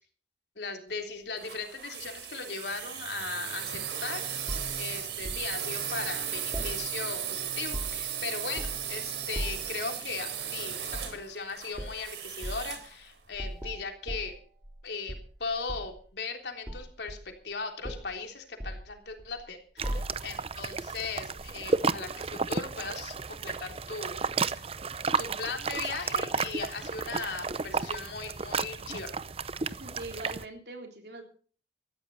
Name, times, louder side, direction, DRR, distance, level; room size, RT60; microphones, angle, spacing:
voice 1, 0.6-14.4 14.8-24.8 25.2-29.1, left 4 dB, 75° left, 4 dB, 3.5 m, -38 dB
sound 1, 1.4-12.9, right 9 dB, 90° right, 3.8 m, -36 dB
sound 2, 4.5-5.5 6.5-7.3 7.5-8.1 8.6-8.9 9.3-9.8 10.9-11.2 11.7-12.0 12.4-12.7 13.3-14.8 15.1-16.0 16.7-17.5 17.8-18.1 18.6-19.4 19.8-20.4 21.4-21.5, equal, 15° right, 3.5 m, -38 dB
sound 3, 19.8-30.4, right 4 dB, 35° right, 0.6 m, -33 dB
voice 2, 29.8-31.2, right 2 dB, 70° right, 4 dB, 3.5 m, -42 dB
18.5 x 14.0 x 4.1 m, 0.42 s
head